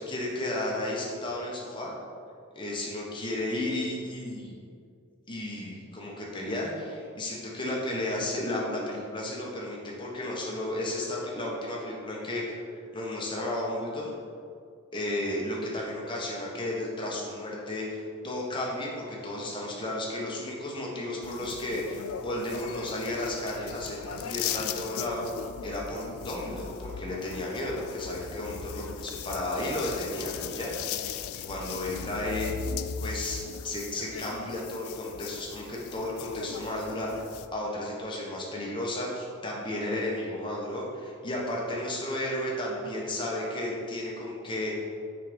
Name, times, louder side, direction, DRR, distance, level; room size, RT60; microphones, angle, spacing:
voice 1, 0.0-1.9 2.5-4.6 5.3-12.6 12.9-14.1 14.9-25.3 25.6-31.1 31.5-32.5 33.0-37.1 37.5-44.9, left 1 dB, 25° left, -3 dB, 1.3 m, -33 dB
sound 1, 21.2-37.5, left 7 dB, 90° left, 0.4 m, -38 dB
6.6 x 5.0 x 5.2 m, 2.3 s
head